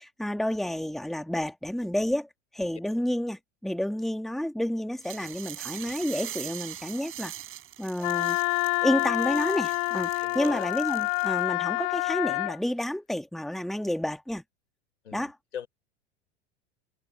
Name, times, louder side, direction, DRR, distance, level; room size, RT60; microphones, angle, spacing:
voice 1, 0.0-7.3 7.8-8.4 8.8-14.4 15.1-15.4, left 1 dB, ahead, 1.7 m, -30 dB
sound 1, 5.0-11.5, right 12 dB, 40° right, 4.2 m, -42 dB
Wind instrument woodwind instrument, 8.0-12.6, left 33 dB, 50° left, 0.9 m, -27 dB
voice 2, 10.2-10.7 15.0-15.2 15.5-15.7, left 8 dB, 85° left, 6.2 m, -37 dB
hypercardioid pair, 85°, 35 cm